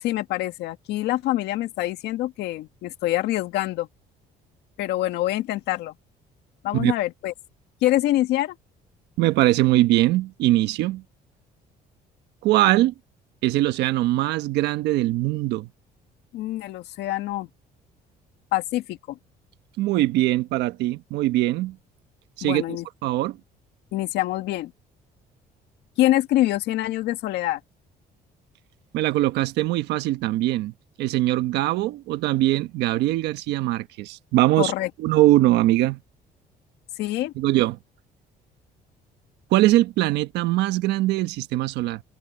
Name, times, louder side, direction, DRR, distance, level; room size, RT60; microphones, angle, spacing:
voice 1, 0.0-3.9 4.8-5.9 6.6-7.3 7.8-8.5 16.3-17.5 18.5-19.2 22.4-22.9 23.9-24.7 26.0-27.6 34.6-34.9 37.0-37.3, left 15 dB, 85° left, 1.8 m, -25 dB
voice 2, 9.2-11.0 12.4-12.9 13.4-15.7 19.8-21.8 22.4-22.6 23.0-23.4 28.9-34.7 35.0-36.0 37.4-37.8 39.5-42.0, right 16 dB, 85° right, 1.2 m, -21 dB
cardioid pair, 110°, 17 cm